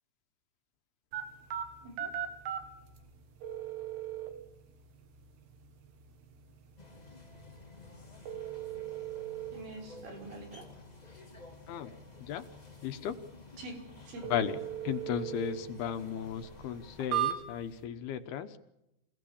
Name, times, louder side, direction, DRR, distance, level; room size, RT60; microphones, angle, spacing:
sound 1, 1.1-17.8, right 11 dB, 70° right, 4.2 m, -41 dB
voice 1, 1.8-2.1 9.5-10.7 13.6-14.3, right 2 dB, 85° right, 3 dB, 7.2 m, -45 dB
sound 2, 6.8-17.1, left 4 dB, 20° left, 1.2 m, -53 dB
voice 2, 11.7-12.5 12.8-13.2 14.2-18.6, left 9 dB, 70° left, 10 dB, 2.8 m, -35 dB
27.5 x 17.5 x 8.6 m, 0.88 s
omnidirectional pair, 5.0 m